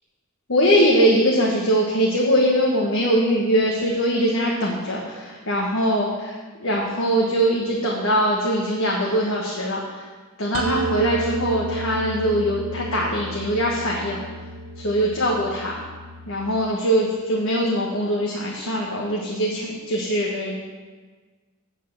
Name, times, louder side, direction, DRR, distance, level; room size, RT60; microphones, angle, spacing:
voice 1, 0.5-6.3 6.6-10.1 10.4-14.2 14.8-15.7 16.3-20.5, equal, 75° left, -3 dB, 1.4 m, -22 dB
sound 1, 10.5-16.3, right 3 dB, 85° right, 1.2 m, -31 dB
8.3 x 7.4 x 7.1 m, 1.4 s
head